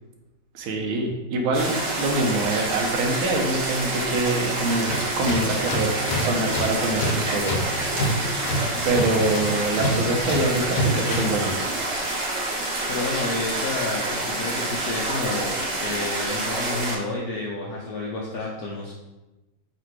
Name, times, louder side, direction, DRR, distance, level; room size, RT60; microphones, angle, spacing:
voice 1, 0.5-7.6 8.8-11.6, right 2 dB, 85° right, 2 dB, 1.6 m, -25 dB
sound 1, 1.5-17.0, right 2 dB, 50° right, 1.0 m, -28 dB
Tools, 4.9-11.5, equal, 70° left, 1.1 m, -28 dB
voice 2, 12.9-18.9, left 2 dB, 90° left, -4 dB, 0.8 m, -30 dB
3.8 x 2.5 x 4.4 m, 1.1 s
omnidirectional pair, 2.3 m